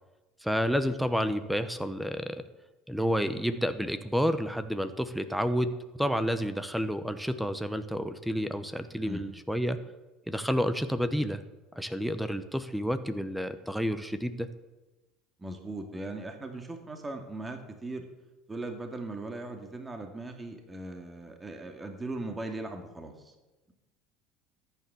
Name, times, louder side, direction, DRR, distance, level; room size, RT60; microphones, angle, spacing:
voice 1, 0.4-2.4 2.9-5.7 6.0-9.8 10.3-11.4 11.7-14.5, equal, ahead, 12 dB, 1.0 m, -30 dB
voice 2, 15.4-18.0 18.5-23.4, right 2 dB, 15° right, 5 dB, 2.2 m, -39 dB
14.0 x 9.4 x 7.0 m, 1.1 s
supercardioid pair, 105°, 0 cm